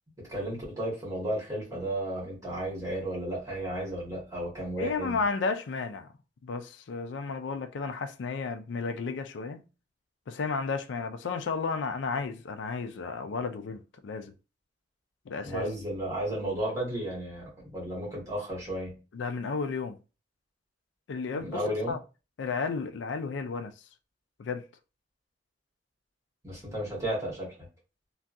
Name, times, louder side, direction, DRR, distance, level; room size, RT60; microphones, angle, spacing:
voice 1, 0.2-5.2 15.4-19.0 21.3-21.9 26.4-27.5, right 1 dB, 20° right, 1.7 m, -33 dB
voice 2, 4.8-6.1 6.4-9.7 10.3-14.3 15.3-15.7 19.1-20.0 21.1-22.0 22.4-23.7 24.4-24.6, left 4 dB, 70° left, 0.4 m, -33 dB
3.4 x 2.3 x 2.6 m
head